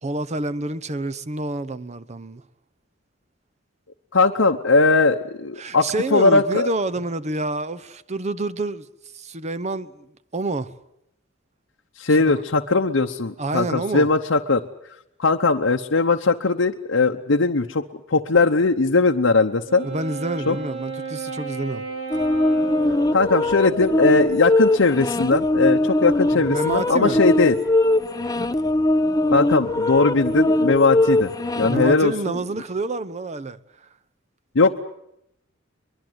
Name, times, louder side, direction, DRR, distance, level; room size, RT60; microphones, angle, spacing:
voice 1, 0.0-2.4 5.6-8.9 9.1-10.1 10.3-10.7 12.1-12.4 13.4-14.1 19.8-21.8 26.3-27.2 31.7-33.6, right 2 dB, 35° right, 0.8 m, -28 dB
voice 2, 4.1-6.7 12.0-14.6 15.2-19.9 20.5-20.6 22.9-27.6 29.3-32.4 34.5-34.8, left 3 dB, 70° left, 0.9 m, -19 dB
Wind instrument woodwind instrument, 19.6-24.2, right 4 dB, 70° right, 4.7 m, -34 dB
sound 1, 22.1-31.9, left 1 dB, 20° left, 0.8 m, -21 dB
23.0 x 22.0 x 7.9 m
head